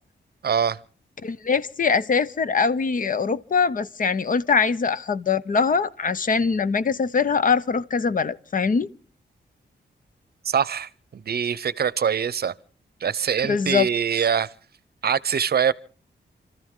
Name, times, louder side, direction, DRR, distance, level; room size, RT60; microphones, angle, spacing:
voice 1, 0.4-0.8 10.4-12.5 13.0-14.5 15.0-15.7, right 7 dB, 60° right, 0.7 m, -23 dB
voice 2, 1.2-8.9 13.5-13.9, left 5 dB, 45° left, 0.7 m, -22 dB
29.0 x 13.5 x 3.7 m
wide cardioid pair, 120°, 19 cm